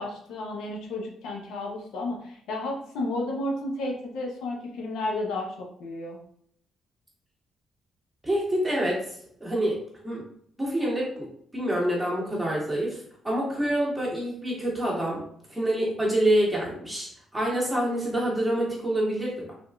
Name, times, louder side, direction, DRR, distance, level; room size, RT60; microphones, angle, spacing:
voice 1, 0.0-6.2, left 2 dB, 85° left, 0 dB, 0.7 m, -32 dB
voice 2, 8.2-9.0 9.4-9.8 10.0-10.2 10.6-13.0 13.2-15.2 15.5-19.5, right 1 dB, 10° right, -5 dB, 1.4 m, -26 dB
3.5 x 2.9 x 2.3 m, 0.67 s
cardioid pair, 90°, 0 cm